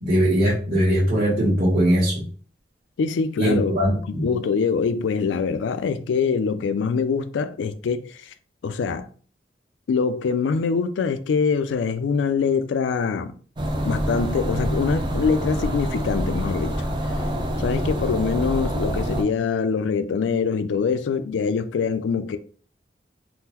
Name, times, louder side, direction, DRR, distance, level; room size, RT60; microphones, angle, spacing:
voice 1, 0.0-2.3 3.4-4.3, equal, 45° right, 1.1 m, -20 dB
voice 2, 3.0-3.7 4.2-8.3 8.6-9.1 9.9-13.3 13.8-16.8 17.6-22.4, left 5 dB, 85° left, 0.3 m, -24 dB
sound 1, 13.6-19.2, equal, 25° right, 0.4 m, -26 dB
3.6 x 2.1 x 2.9 m
head